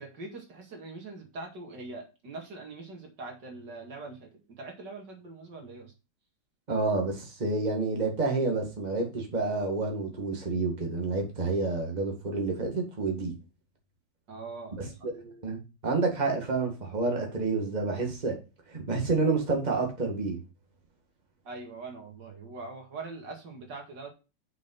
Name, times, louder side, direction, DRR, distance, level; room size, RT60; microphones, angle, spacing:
voice 1, 0.0-5.9 14.3-14.9 21.4-24.1, right 3 dB, 75° right, 2.6 m, -42 dB
voice 2, 6.7-13.3 15.0-15.1 15.4-18.4 18.7-20.4, right 3 dB, 25° right, 1.9 m, -29 dB
6.4 x 5.5 x 5.5 m
omnidirectional pair, 1.9 m